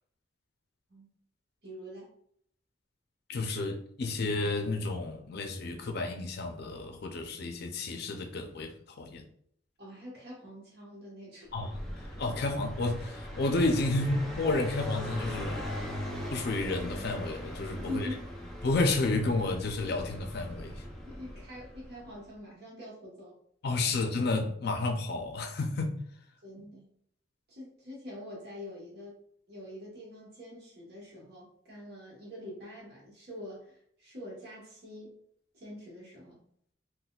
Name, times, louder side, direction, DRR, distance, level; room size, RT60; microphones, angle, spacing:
voice 1, 1.6-2.1 9.8-11.5 17.7-18.3 21.0-23.3 26.4-26.9 27.5-29.2 29.5-35.1 35.5-36.4, left 1 dB, 55° right, 1.1 m, -44 dB
voice 2, 3.3-9.2 11.5-15.6 16.3-18.1 18.6-20.7 23.6-25.9, left 2 dB, 55° left, 0.4 m, -31 dB
Car passing by, 11.5-22.1, left 1 dB, ahead, 0.4 m, -40 dB
4.0 x 2.2 x 2.3 m
head